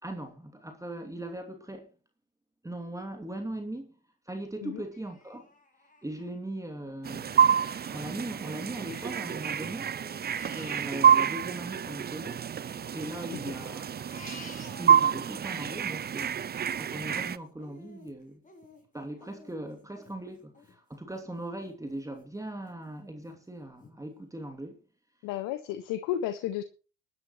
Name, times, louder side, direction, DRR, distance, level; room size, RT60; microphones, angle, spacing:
voice 1, 0.0-1.9 2.6-4.0 4.3-5.5 6.0-10.0 10.5-12.4 12.9-14.0 14.8-18.4 18.9-24.8, right 1 dB, 10° right, 2.6 m, -39 dB
Crying sobbing, 4.9-6.6 7.0-9.4 9.7-12.1 12.6-15.4 15.8-21.2 21.7-21.8 22.2-22.8 23.3-23.4 23.8-23.9, left 2 dB, 20° left, 6.5 m, -52 dB
sound 1, 7.0-17.4, right 8 dB, 25° right, 0.8 m, -27 dB
voice 2, 25.2-26.6, left 11 dB, 60° left, 1.5 m, -33 dB
21.0 x 11.0 x 3.1 m
hypercardioid pair, 70°, 37 cm